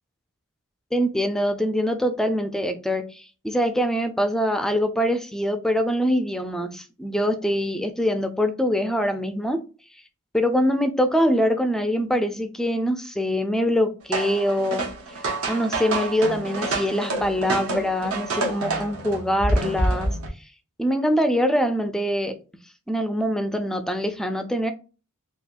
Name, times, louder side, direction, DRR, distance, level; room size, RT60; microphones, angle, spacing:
voice 1, 0.9-9.6 10.3-15.1 15.5-20.2 20.8-22.4 22.9-24.7, equal, ahead, 0.3 m, -24 dB
sound 1, 14.1-20.3, right 2 dB, 75° right, 1.0 m, -27 dB
3.5 x 2.3 x 2.5 m
head